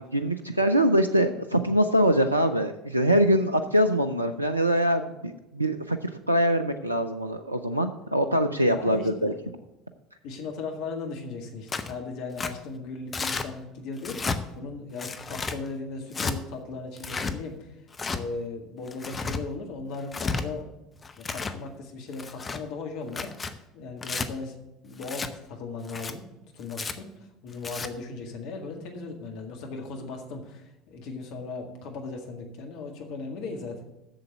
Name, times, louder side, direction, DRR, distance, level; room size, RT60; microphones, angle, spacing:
voice 1, 0.0-9.3, equal, 90° right, 8 dB, 0.4 m, -23 dB
voice 2, 8.7-9.4 10.2-17.8 18.1-20.7 21.2-24.6 24.8-26.2 26.5-27.1 27.4-33.8, left 3 dB, 55° left, 3 dB, 1.9 m, -37 dB
Tearing, 11.7-11.9 12.4-12.5 13.1-13.5 14.0-14.4 15.0-15.6 16.1-16.3 17.0-17.3 17.9-18.2 18.9-19.4 20.0-20.4 21.0-21.6 22.1-22.6 23.1-23.5 24.0-24.3 25.0-25.3 25.8-26.1 26.7-26.9 27.5-27.9, left 4 dB, 25° left, 0.8 m, -32 dB
7.7 x 7.1 x 8.0 m, 0.93 s
figure-of-eight pair, 65°, 0 cm